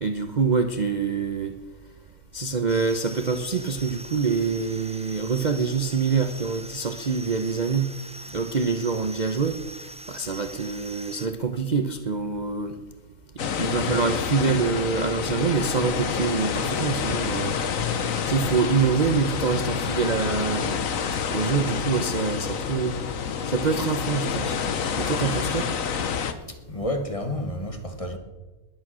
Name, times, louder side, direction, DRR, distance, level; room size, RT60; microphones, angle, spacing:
voice 1, 0.0-1.5 2.3-7.9 8.3-9.6 10.1-12.8 13.6-17.6 18.3-20.8 21.3-23.0 23.5-24.6 25.0-25.7, right 5 dB, 40° right, 0.8 m, -25 dB
sound 1, 2.7-11.3, right 1 dB, 10° right, 0.3 m, -42 dB
sound 2, 13.4-26.3, left 6 dB, 60° left, 1.4 m, -28 dB
voice 2, 26.5-28.2, left 1 dB, 25° left, 1.4 m, -30 dB
20.5 x 8.9 x 6.2 m
omnidirectional pair, 1.6 m